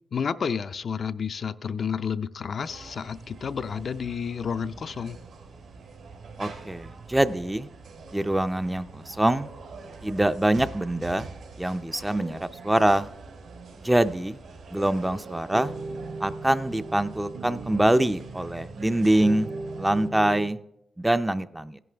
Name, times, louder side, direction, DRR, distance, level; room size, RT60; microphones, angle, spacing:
voice 1, 0.1-5.2, left 6 dB, 50° left, 0.4 m, -30 dB
sound 1, 2.6-20.1, right 4 dB, 85° right, 3.2 m, -45 dB
voice 2, 6.4-7.7 8.1-9.5 10.0-11.3 11.6-13.1 13.8-14.4 14.7-15.7 16.2-19.5 19.8-20.6 21.0-21.8, right 1 dB, 10° right, 0.4 m, -24 dB
sound 2, 15.5-20.5, right 3 dB, 65° right, 1.0 m, -37 dB
16.0 x 10.5 x 3.4 m
wide cardioid pair, 135°, 0 cm